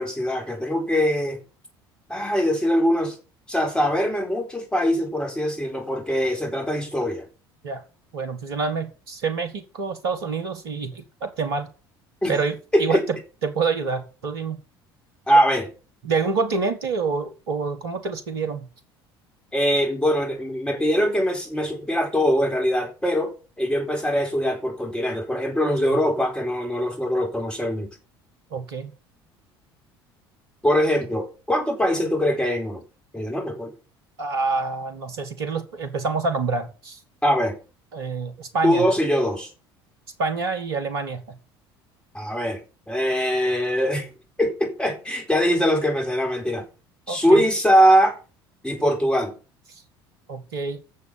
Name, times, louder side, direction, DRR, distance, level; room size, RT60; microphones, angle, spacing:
voice 1, 0.0-1.4 2.1-3.2 3.5-7.3 12.2-12.4 12.7-13.0 15.3-15.7 19.5-28.0 30.6-32.8 33.1-33.7 37.2-37.6 38.6-39.5 42.1-42.6 42.9-44.1 44.4-46.6 47.1-48.2 48.6-49.3, equal, 5° left, 4.4 m, -22 dB
voice 2, 8.1-11.7 12.3-13.2 13.4-14.6 16.0-18.6 25.8-25.9 28.5-28.9 34.2-37.0 37.9-38.8 40.2-41.2 47.1-47.4 50.3-50.8, right 4 dB, 75° right, 1.7 m, -27 dB
9.2 x 6.8 x 7.1 m
figure-of-eight pair, 65°, 13 cm